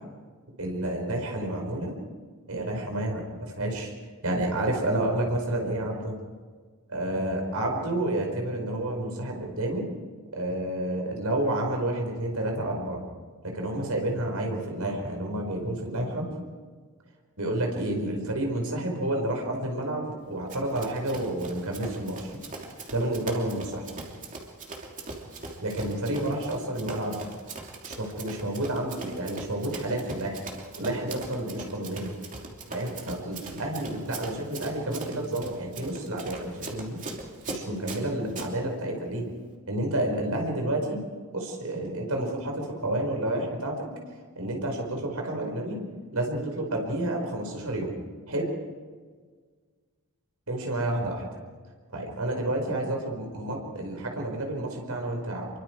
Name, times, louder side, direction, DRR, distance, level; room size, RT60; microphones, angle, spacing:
voice 1, 0.6-1.9 2.5-3.9 4.2-6.1 6.9-9.8 10.3-13.0 13.4-16.3 17.4-22.4 22.9-23.9 25.6-27.2 27.8-30.4 30.8-32.2 32.7-37.0 37.5-39.3 39.7-41.0 41.3-43.9 44.3-45.8 46.1-47.9 48.3-48.5 50.5-51.2 51.9-55.5, right 1 dB, 80° right, 1 dB, 5.1 m, -30 dB
Run, 20.5-38.5, right 3 dB, 35° right, 3.0 m, -41 dB
27.5 x 23.5 x 4.7 m, 1.6 s
head